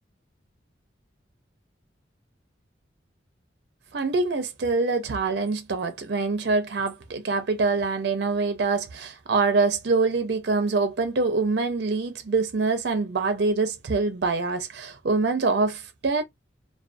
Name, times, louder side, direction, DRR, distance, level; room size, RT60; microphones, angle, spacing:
voice 1, 3.9-16.2, right 3 dB, 60° right, 0.5 m, -25 dB
2.4 x 2.2 x 2.5 m
head